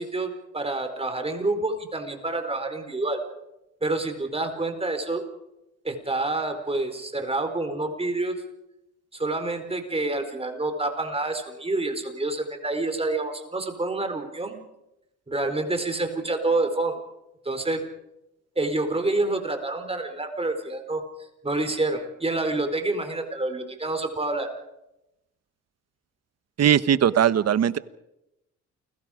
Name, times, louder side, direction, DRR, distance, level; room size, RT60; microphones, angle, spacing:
voice 1, 0.0-3.2 3.8-5.2 5.8-8.3 9.1-14.6 15.3-17.0 17.4-17.8 18.6-21.0 21.4-24.5, right 2 dB, 20° right, 6 dB, 4.4 m, -28 dB
voice 2, 26.6-27.8, right 9 dB, 55° right, 15 dB, 1.2 m, -19 dB
29.5 x 22.5 x 5.1 m, 0.89 s
cardioid pair, 90°, 30 cm